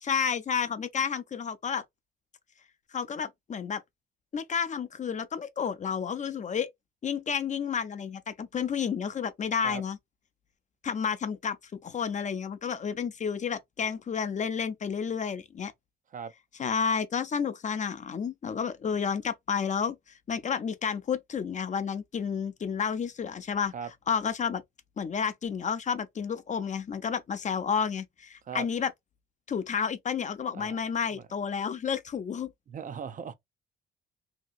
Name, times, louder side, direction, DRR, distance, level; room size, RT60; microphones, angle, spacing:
voice 1, 0.0-1.8 2.9-3.8 4.3-6.7 7.0-10.0 10.8-11.6 11.8-15.7 16.6-20.0 20.3-23.7 24.1-24.6 25.0-28.9 29.5-32.5, left 7 dB, 40° left, 0.5 m, -31 dB
voice 2, 32.7-33.3, right 7 dB, 40° right, 0.5 m, -38 dB
2.9 x 2.7 x 2.4 m
cardioid pair, 90°, 20 cm